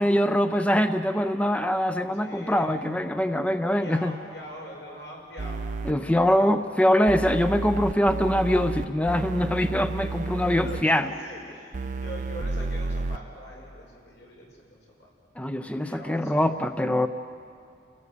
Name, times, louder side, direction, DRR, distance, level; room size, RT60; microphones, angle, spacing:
voice 1, 0.0-4.1 5.9-11.1 15.4-17.1, equal, 5° left, 9 dB, 0.5 m, -23 dB
voice 2, 2.1-2.9 3.8-5.7 5.9-6.5 10.1-15.1 15.8-16.4, left 1 dB, 80° left, -1 dB, 6.5 m, -43 dB
sound 1, 5.4-5.9 7.1-10.8 11.7-13.2, right 3 dB, 45° right, 0.5 m, -31 dB
29.5 x 17.0 x 8.2 m, 2.4 s
head